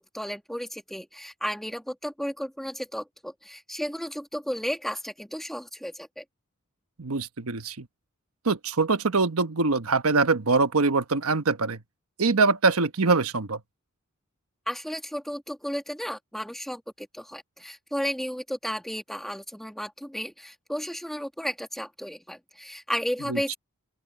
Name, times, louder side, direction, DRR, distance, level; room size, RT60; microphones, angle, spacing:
voice 1, 0.0-6.2 14.7-23.6, equal, ahead, 1.8 m, -33 dB
voice 2, 7.0-7.9 8.4-11.8 12.2-13.6 23.3-23.4, right 3 dB, 85° right, 1.2 m, -23 dB
open air
head